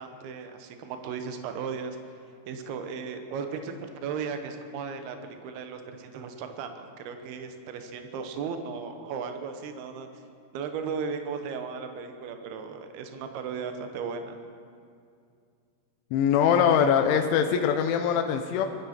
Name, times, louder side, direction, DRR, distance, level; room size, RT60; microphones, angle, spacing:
voice 1, 0.0-2.0 2.5-5.2 5.4-10.1 10.5-14.4, right 6 dB, 75° right, 6 dB, 2.3 m, -36 dB
voice 2, 16.1-18.7, left 8 dB, 80° left, 5 dB, 3.0 m, -22 dB
23.0 x 13.5 x 4.4 m, 2.3 s
omnidirectional pair, 6.0 m